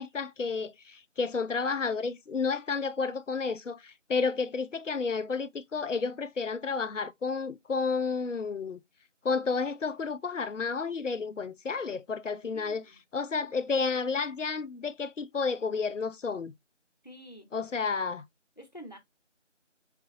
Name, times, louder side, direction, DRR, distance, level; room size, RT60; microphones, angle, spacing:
voice 1, 0.0-8.8 9.2-12.8 13.1-16.5 17.5-18.3, left 4 dB, 80° left, 0.6 m, -31 dB
voice 2, 12.4-13.0 17.0-17.5 18.6-19.0, equal, 35° left, 0.9 m, -48 dB
4.1 x 3.3 x 2.6 m
figure-of-eight pair, 170°, 37 cm